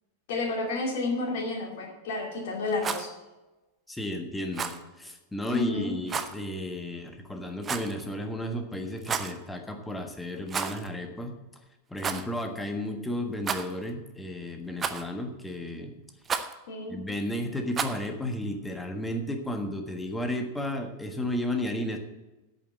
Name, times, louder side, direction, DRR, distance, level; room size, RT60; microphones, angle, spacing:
voice 1, 0.3-3.1 5.5-6.0 16.7-17.0, left 3 dB, 50° left, 1 dB, 2.4 m, -31 dB
Rattle, 2.7-3.1 4.5-4.8 6.1-6.3 7.6-8.0 9.0-9.4 10.5-10.9 11.2-11.3 12.0-12.3 13.4-13.9 14.8-15.2 16.2-16.5 17.7-18.1, right 6 dB, 20° right, 0.7 m, -32 dB
voice 2, 3.9-11.3 11.9-15.9 16.9-22.0, left 1 dB, 5° left, 4 dB, 1.5 m, -33 dB
8.5 x 7.3 x 8.8 m, 1.1 s
figure-of-eight pair, 90°, 0 cm